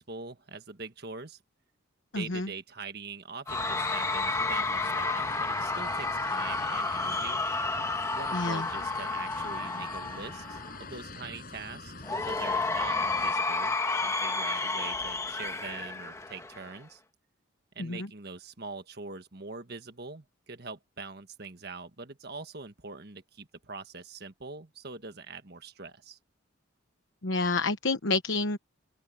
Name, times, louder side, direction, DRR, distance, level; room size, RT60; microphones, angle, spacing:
voice 1, 0.0-1.4 2.1-7.4 8.1-11.9 12.2-17.0 17.7-26.2, right 4 dB, 50° right, 1.6 m, -43 dB
voice 2, 2.1-2.5 8.3-8.7 17.8-18.1 27.2-28.6, left 3 dB, 70° left, 1.1 m, -29 dB
sound 1, 3.5-13.3, left 3 dB, 45° left, 7.7 m, -44 dB
Cheering / Crowd, 3.5-10.8 12.0-16.8, left 3 dB, 15° left, 1.2 m, -31 dB
head